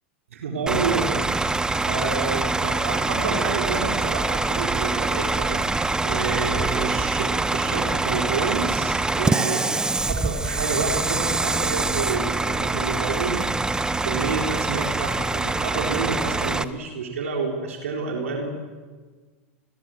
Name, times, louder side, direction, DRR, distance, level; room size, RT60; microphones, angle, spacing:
voice 1, 0.3-1.4 1.8-5.6 6.0-9.8 10.1-13.4 13.9-18.5, right 4 dB, 80° right, 2 dB, 3.9 m, -29 dB
Bus / Idling, 0.7-16.6, right 3 dB, 10° right, 0.9 m, -24 dB
28.5 x 21.5 x 7.7 m, 1.4 s
hypercardioid pair, 100°, 7 cm